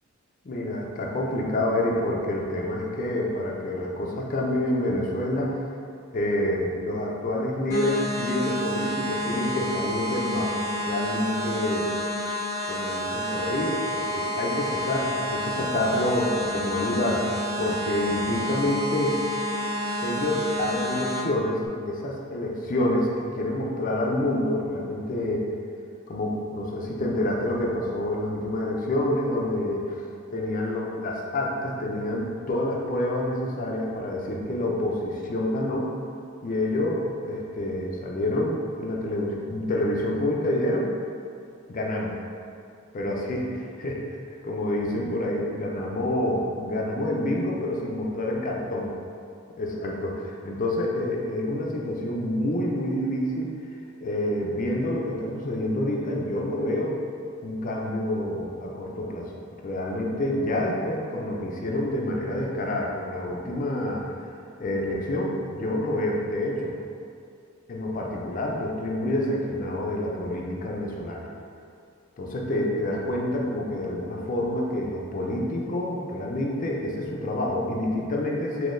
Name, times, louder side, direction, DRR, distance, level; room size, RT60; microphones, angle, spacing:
voice 1, 0.4-5.6 6.1-11.9 12.7-17.3 17.6-19.2 20.0-25.4 26.1-30.0 30.3-35.9 36.4-40.9 41.7-42.1 42.9-44.1 44.4-48.9 49.6-53.5 54.0-57.0 57.4-59.3 59.6-64.0 64.6-66.7 67.7-71.3 72.2-78.7, left 1 dB, 40° left, -1 dB, 0.4 m, -27 dB
sound 1, 7.7-21.2, equal, 15° left, 1.1 m, -29 dB
3.7 x 2.7 x 2.5 m, 2.4 s
head